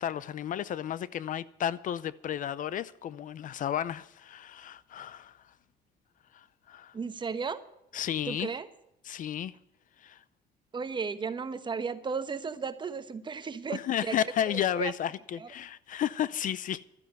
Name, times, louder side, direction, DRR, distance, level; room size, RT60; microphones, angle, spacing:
voice 1, 0.0-5.4 6.3-6.9 7.9-8.5 9.0-9.5 10.0-10.2 13.7-16.8, left 10 dB, 50° left, 0.6 m, -33 dB
voice 2, 6.9-7.6 8.3-8.7 10.7-14.2 14.4-14.9 15.4-15.5, right 5 dB, 30° right, 1.0 m, -34 dB
12.5 x 9.4 x 9.1 m
cardioid pair, 110°, 17 cm